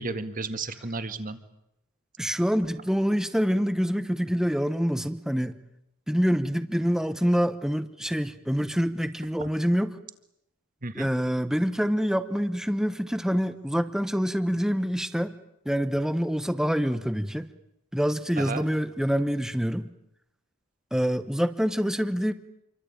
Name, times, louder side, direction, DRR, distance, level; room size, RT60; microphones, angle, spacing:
voice 1, 0.0-1.4 9.4-9.5 10.8-11.1 18.4-18.7, right 3 dB, 40° right, 10 dB, 1.9 m, -33 dB
voice 2, 2.2-5.5 6.1-9.9 10.9-15.3 15.6-17.5 17.9-19.9 20.9-22.3, equal, ahead, 11 dB, 1.0 m, -26 dB
27.5 x 24.0 x 8.9 m, 0.82 s
head